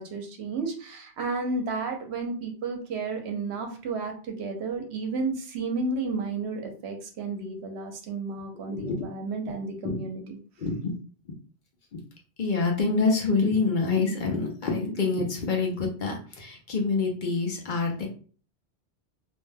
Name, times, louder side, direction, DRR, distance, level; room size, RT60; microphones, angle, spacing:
voice 1, 0.0-10.4, right 3 dB, 80° right, 3 dB, 0.9 m, -32 dB
voice 2, 8.5-9.0 9.8-10.0 10.6-10.9 11.9-12.0 12.4-18.1, left 4 dB, 55° left, 1 dB, 0.7 m, -26 dB
2.6 x 2.1 x 3.2 m, 0.41 s
omnidirectional pair, 1.1 m